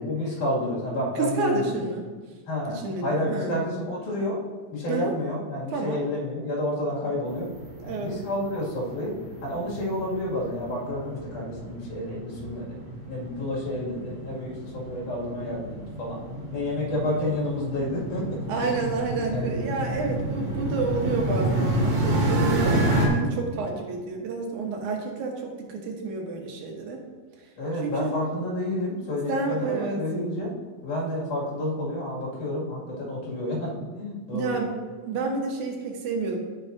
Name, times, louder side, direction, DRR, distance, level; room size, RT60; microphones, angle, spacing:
voice 1, 0.0-1.8 2.5-4.4 4.7-7.5 7.8-9.2 9.4-12.8 13.1-16.2 16.5-18.8 19.3-19.5 20.0-20.1 21.0-21.2 27.6-30.5 30.8-34.6, left 1 dB, 80° left, -6 dB, 3.8 m, -30 dB
voice 2, 1.1-2.0 2.8-3.5 4.9-5.1 5.7-6.0 7.8-8.1 18.5-27.0 27.8-28.2 29.3-30.0 34.3-34.7 35.1-36.4, right 4 dB, 80° right, 1 dB, 2.6 m, -29 dB
sound 1, 7.3-23.1, right 1 dB, 45° right, 2.5 m, -29 dB
13.0 x 6.3 x 2.7 m, 1.4 s
omnidirectional pair, 3.4 m